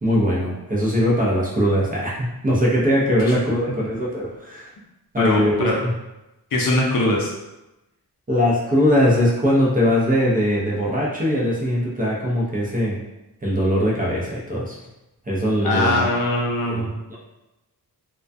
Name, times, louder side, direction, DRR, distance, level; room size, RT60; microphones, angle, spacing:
voice 1, 0.0-4.7 5.1-5.9 8.3-13.0 13.4-14.8 15.3-16.1 16.7-17.2, equal, 20° right, -6 dB, 0.5 m, -21 dB
voice 2, 5.2-5.8 6.5-7.3 15.6-16.9, left 1 dB, 60° left, -2 dB, 0.6 m, -21 dB
2.2 x 2.2 x 2.5 m, 0.95 s
wide cardioid pair, 125°, 39 cm